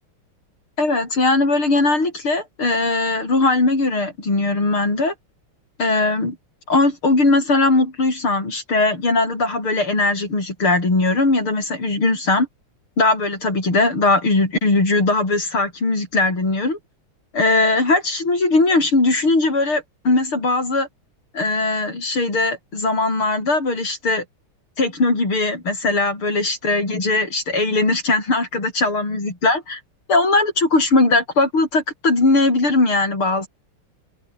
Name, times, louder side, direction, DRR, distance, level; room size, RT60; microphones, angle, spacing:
voice 1, 0.8-5.1 5.8-6.4 6.7-12.5 13.0-16.8 17.3-20.9 21.3-24.2 24.8-29.8 30.1-33.5, left 2 dB, 75° left, 8.2 m, -19 dB
open air
omnidirectional pair, 2.4 m